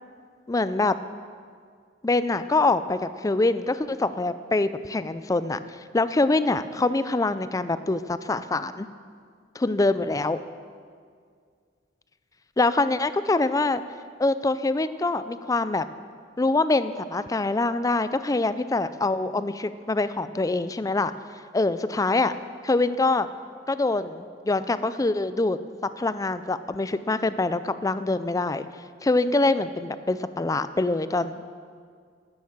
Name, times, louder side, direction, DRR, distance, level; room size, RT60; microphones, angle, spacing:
voice 1, 0.5-1.0 2.0-5.6 5.9-8.9 9.6-10.4 12.6-13.8 14.2-15.8 16.4-21.1 21.5-22.4 22.6-23.3 23.7-28.7 29.0-31.5, left 2 dB, 20° left, 13 dB, 0.4 m, -24 dB
11.0 x 9.7 x 7.2 m, 2.1 s
head